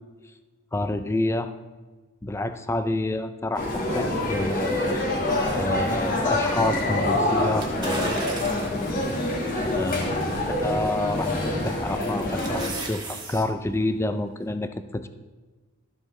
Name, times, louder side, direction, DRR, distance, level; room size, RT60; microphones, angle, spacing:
voice 1, 0.7-1.5 2.2-5.0 5.6-8.4 9.8-11.3 11.6-15.1, left 1 dB, 10° left, 10 dB, 0.4 m, -28 dB
sound 1, 3.5-12.7, left 1 dB, 40° left, 1.6 m, -26 dB
sound 2, 7.6-8.8 9.4-9.5 11.1-11.5 11.9-13.4 13.8-13.9, right 3 dB, 20° right, 1.3 m, -36 dB
13.0 x 7.7 x 3.2 m, 1.3 s
head